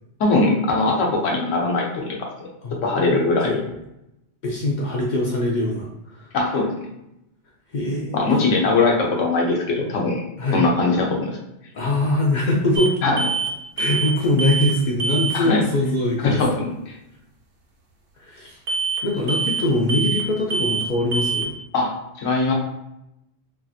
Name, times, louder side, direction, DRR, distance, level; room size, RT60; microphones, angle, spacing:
voice 1, 0.2-2.5 2.8-3.6 6.3-6.7 8.1-10.2 10.5-11.4 13.0-13.2 15.3-15.6 16.2-16.9 21.7-21.9 22.2-22.5, left 3 dB, 85° left, -1 dB, 1.1 m, -21 dB
voice 2, 2.6-3.8 4.4-6.3 7.7-8.3 10.4-10.6 11.7-13.0 13.8-16.4 18.2-18.6 19.0-21.5, left 1 dB, 60° left, -2 dB, 0.5 m, -23 dB
sound 1, 12.8-12.9 13.2-13.5 13.8-14.1 14.4-14.7 15.0-15.4 18.7-19.0 19.3-19.6 19.9-20.2 20.5-20.9 21.1-21.4, right 4 dB, 60° right, 0.8 m, -24 dB
3.1 x 2.4 x 2.6 m, 0.86 s
omnidirectional pair, 1.3 m